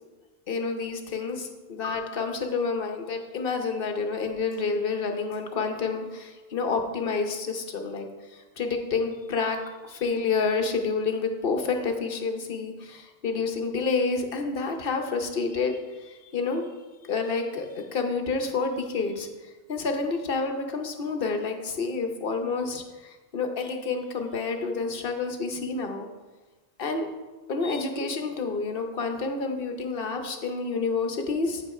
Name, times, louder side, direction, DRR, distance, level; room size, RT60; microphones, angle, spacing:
voice 1, 0.5-16.7 17.0-19.3 19.7-26.1 26.8-27.1 27.5-31.6, left 4 dB, 65° left, 5 dB, 1.1 m, -29 dB
8.4 x 5.4 x 4.8 m, 1.3 s
omnidirectional pair, 1.0 m